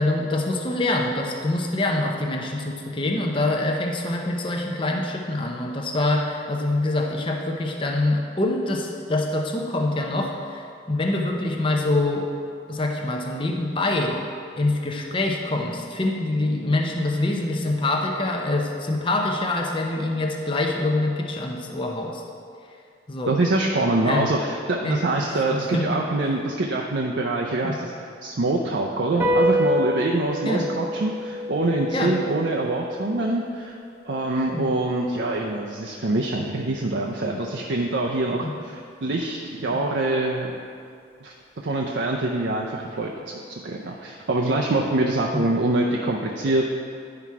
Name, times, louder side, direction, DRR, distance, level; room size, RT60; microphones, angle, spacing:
voice 1, 0.0-12.3 12.7-14.2 14.6-22.2 23.1-23.3 24.0-24.3 24.8-25.0 25.7-25.8 27.6-27.8 30.4-30.7 31.9-32.1 34.5-34.7 38.4-38.5 39.7-39.8 45.3-45.4, left 2 dB, 25° left, 1 dB, 0.6 m, -25 dB
voice 2, 23.3-33.8 34.0-40.6 41.2-46.7, right 2 dB, 65° right, -1 dB, 0.6 m, -25 dB
sound 1, 29.2-35.9, equal, 10° right, 0.7 m, -28 dB
9.6 x 5.9 x 4.7 m, 2.3 s
head